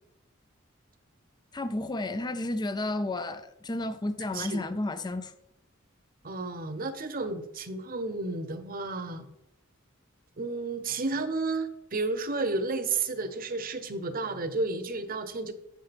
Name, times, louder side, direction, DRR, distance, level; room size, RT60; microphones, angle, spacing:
voice 1, 1.5-5.3, left 2 dB, 20° left, 0.4 m, -32 dB
voice 2, 4.3-4.7 6.2-9.3 10.4-15.5, right 3 dB, 45° right, 0.9 m, -32 dB
8.5 x 8.2 x 3.5 m
head